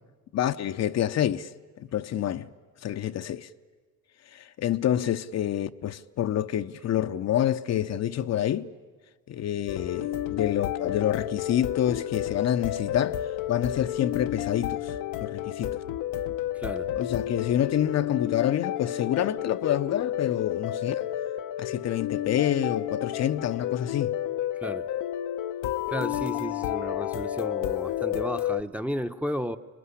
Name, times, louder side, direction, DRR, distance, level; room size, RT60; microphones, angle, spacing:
voice 1, 0.3-1.5 1.8-2.5 2.8-3.5 4.3-8.7 9.3-13.2 13.5-14.9 15.2-15.8 17.0-21.1 21.6-24.2, left 11 dB, 60° left, 0.7 m, -27 dB
sound 1, 9.7-28.6, left 12 dB, 85° left, 0.8 m, -31 dB
voice 2, 16.5-16.9 24.6-24.9 25.9-29.6, equal, 5° right, 0.8 m, -33 dB
24.5 x 20.5 x 9.9 m
cardioid pair, 90°, 30 cm